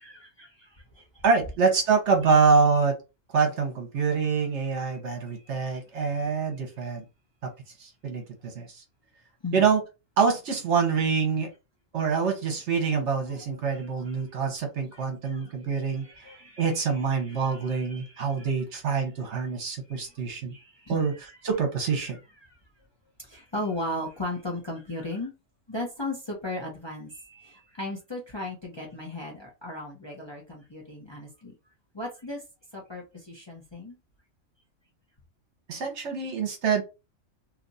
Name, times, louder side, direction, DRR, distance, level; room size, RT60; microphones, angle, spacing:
voice 1, 0.0-1.2 2.2-2.4 4.8-5.0 5.3-5.5 6.1-6.3 9.4-9.6 13.3-14.2 14.9-18.5 18.9-19.0 19.9-21.1 22.4-22.6 23.2-25.3 25.7-31.5 31.9-32.4 32.7-34.0, left 2 dB, 25° left, 0.8 m, -37 dB
voice 2, 1.2-3.0 3.3-7.0 7.4-7.5 7.8-8.8 9.5-9.8 10.2-11.5 11.9-16.0 16.6-20.5 20.9-21.1 21.4-22.2 35.7-36.8, right 5 dB, 60° right, 1.1 m, -25 dB
2.9 x 2.4 x 4.0 m
omnidirectional pair, 1.4 m